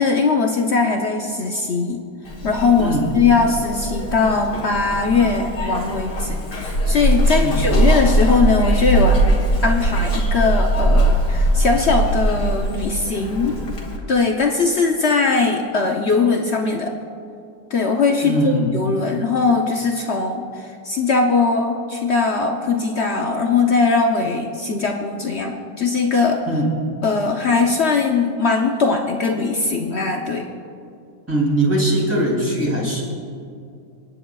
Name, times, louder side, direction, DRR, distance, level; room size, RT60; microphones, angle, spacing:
voice 1, 0.0-2.0 2.4-9.2 9.6-13.6 14.1-16.9 17.7-26.5 27.0-30.5, left 4 dB, 55° left, 2 dB, 0.8 m, -20 dB
Zipper (clothing), 2.3-14.0, right 1 dB, 75° left, 2.5 m, -20 dB
voice 2, 18.2-18.8 26.5-26.7 31.3-33.0, right 1 dB, 10° right, -4 dB, 2.8 m, -20 dB
28.0 x 10.0 x 2.3 m, 2.4 s
omnidirectional pair, 1.8 m